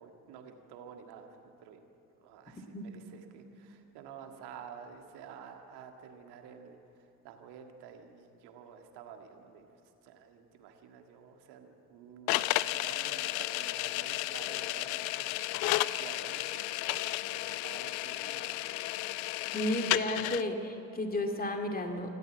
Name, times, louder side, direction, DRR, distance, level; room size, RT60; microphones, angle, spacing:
voice 1, 0.0-1.8 2.2-6.8 7.2-9.7 10.0-18.6 19.7-19.8, right 7 dB, 60° right, 5 dB, 1.9 m, -51 dB
sound 1, 12.3-20.4, left 17 dB, 65° left, 0.6 m, -33 dB
voice 2, 19.5-22.2, left 1 dB, 20° left, 4 dB, 2.3 m, -33 dB
26.0 x 13.0 x 8.3 m, 2.8 s
figure-of-eight pair, 45°, 45 cm